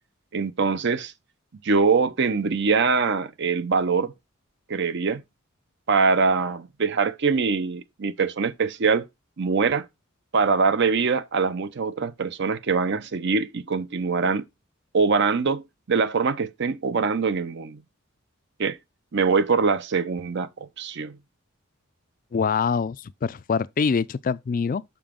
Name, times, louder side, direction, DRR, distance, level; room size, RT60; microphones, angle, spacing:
voice 1, 0.3-1.1 1.6-4.1 4.7-5.2 5.9-9.1 9.4-9.9 10.3-14.4 14.9-17.8 18.6-18.8 19.1-20.5 20.8-21.2, right 4 dB, 55° right, 0.6 m, -23 dB
voice 2, 22.3-24.8, left 5 dB, 40° left, 0.3 m, -25 dB
7.0 x 5.8 x 3.6 m
head